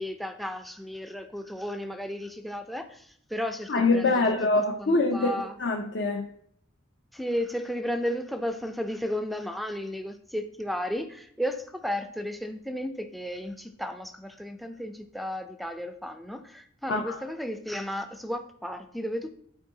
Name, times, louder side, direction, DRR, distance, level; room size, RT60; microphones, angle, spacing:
voice 1, 0.0-4.2 4.5-5.6 7.1-19.3, equal, ahead, 8 dB, 0.4 m, -34 dB
voice 2, 3.7-5.3 5.6-6.3 16.9-17.2, left 3 dB, 60° left, 3 dB, 0.6 m, -24 dB
11.5 x 4.5 x 2.7 m, 0.66 s
head